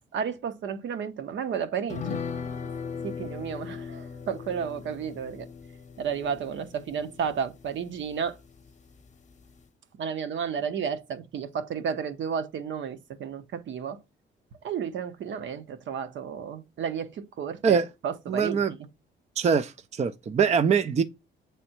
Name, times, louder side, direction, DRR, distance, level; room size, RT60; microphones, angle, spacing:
voice 1, 0.1-2.2 3.0-5.5 6.0-8.4 10.0-14.0 14.6-18.8, right 7 dB, 70° right, 1.0 m, -32 dB
sound 1, 1.9-8.7 9.0-9.1 9.4-9.6, left 6 dB, 35° left, 0.8 m, -38 dB
voice 2, 18.3-18.7 19.4-21.0, right 6 dB, 35° right, 0.5 m, -23 dB
7.7 x 3.4 x 4.3 m
cardioid pair, 90°, 20 cm